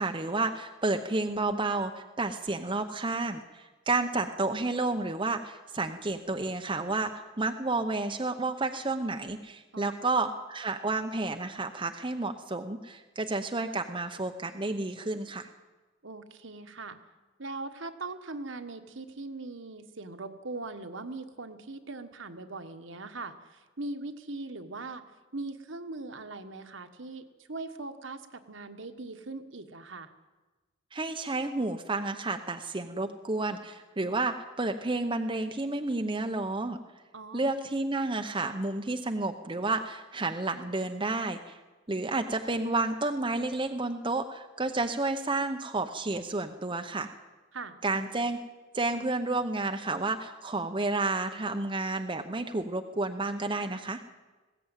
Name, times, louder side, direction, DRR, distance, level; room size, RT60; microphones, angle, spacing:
voice 1, 0.0-15.5 30.9-36.8 37.3-41.6 41.9-47.1 47.8-48.4 48.7-54.0, right 2 dB, 25° right, 6 dB, 0.8 m, -31 dB
voice 2, 9.7-10.1 16.0-17.0 17.4-25.0 25.3-30.1 37.1-37.5 47.5-47.8, right 3 dB, 60° right, 8 dB, 1.4 m, -40 dB
20.0 x 16.0 x 9.0 m, 1.3 s
head